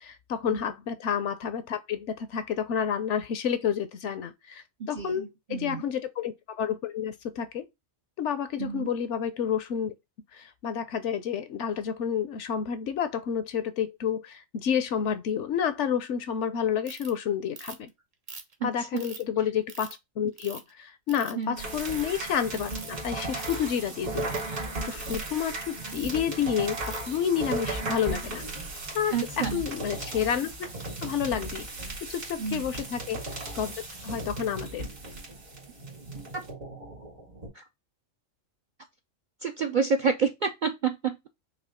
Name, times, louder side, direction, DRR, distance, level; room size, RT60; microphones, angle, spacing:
voice 1, 0.0-7.7 8.2-9.9 10.3-17.9 18.6-28.4 28.9-30.7 31.0-31.7 32.1-33.7 34.0-34.9, left 8 dB, 65° left, 0.9 m, -30 dB
voice 2, 4.8-5.8 8.6-8.9 18.6-19.0 21.4-21.6 29.1-29.6 32.4-32.7 36.3-36.4 37.5-37.6 39.4-41.3, right 5 dB, 60° right, 0.5 m, -29 dB
Ratchet pawl, 16.9-17.1 17.6-17.9 18.3-19.2 19.7-19.9 20.4-20.7 21.1-21.4 21.7-22.0 22.5-22.9 23.3-23.7 24.1-24.4 25.0-25.3 25.9-26.2 26.8-27.1, right 4 dB, 40° right, 0.8 m, -43 dB
sound 1, 21.6-37.5, right 2 dB, 75° right, 2.3 m, -36 dB
5.6 x 2.4 x 3.6 m
omnidirectional pair, 1.4 m